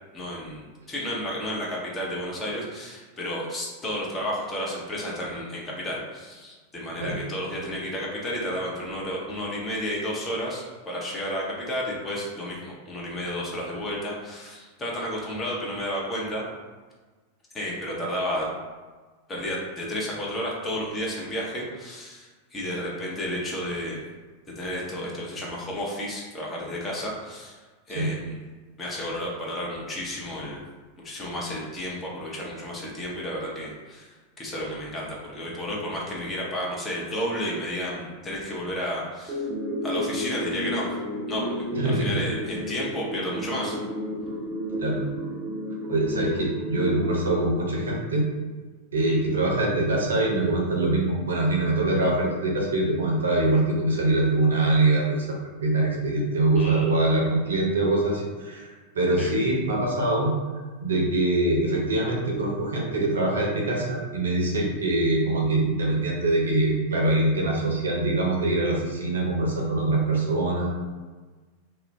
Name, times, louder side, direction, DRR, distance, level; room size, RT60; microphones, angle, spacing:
voice 1, 0.1-16.4 17.5-18.5 19.3-24.0 24.6-27.5 27.9-28.3 28.8-30.6 31.0-34.1 34.4-39.4 39.8-40.9 41.3-43.8 49.1-49.2 56.6-56.8 59.2-59.3, equal, 20° left, -4 dB, 0.7 m, -32 dB
sound 1, 39.3-48.3, left 1 dB, 25° right, 0.5 m, -32 dB
voice 2, 41.7-42.1 44.8-45.0 45.9-48.3 48.9-55.3 55.6-58.7 58.9-60.3 60.8-70.7, right 2 dB, 70° right, -2 dB, 0.6 m, -23 dB
2.4 x 2.1 x 3.1 m, 1.3 s
figure-of-eight pair, 90°, 0 cm